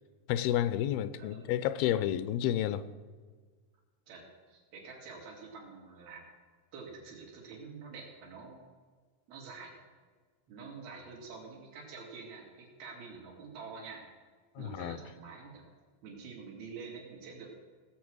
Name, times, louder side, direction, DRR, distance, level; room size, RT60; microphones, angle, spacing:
voice 1, 0.3-2.9 14.6-15.0, left 11 dB, 85° left, 2.5 m, -30 dB
voice 2, 1.1-1.6 4.1-6.2 6.7-8.7 9.3-9.7 10.5-14.0 14.6-15.7 16.0-17.6, right 4 dB, 85° right, 4.6 m, -47 dB
17.5 x 8.0 x 6.3 m
omnidirectional pair, 4.3 m